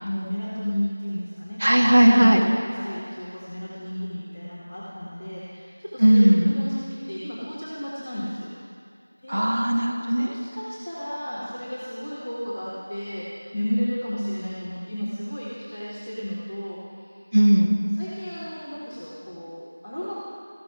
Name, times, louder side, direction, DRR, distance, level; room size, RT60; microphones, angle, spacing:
voice 1, 0.0-8.5 9.2-9.5 10.2-17.1 17.7-20.1, equal, 10° left, -14 dB, 1.5 m, -32 dB
voice 2, 1.6-2.4 6.0-6.6 9.3-10.3 17.3-17.7, equal, 45° right, 2 dB, 1.5 m, -17 dB
18.0 x 15.5 x 4.9 m, 2.3 s
figure-of-eight pair, 180°, 0 cm